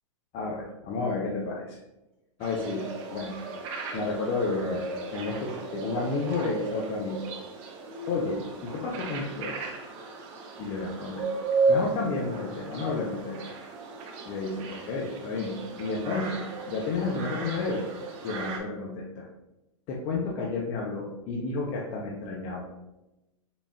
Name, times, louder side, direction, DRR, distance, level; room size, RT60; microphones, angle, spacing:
voice 1, 0.3-1.8 2.4-2.8 3.1-3.3 3.9-4.8 5.1-7.3 8.1-9.7 10.6-11.3 11.7-13.5 14.2-17.9 18.2-19.3 19.9-22.7, left 3 dB, 35° left, -3 dB, 0.6 m, -31 dB
sound 1, 2.4-18.6, right 3 dB, 35° right, 0.7 m, -34 dB
3.9 x 3.6 x 2.2 m, 0.95 s
hypercardioid pair, 135°, 17 cm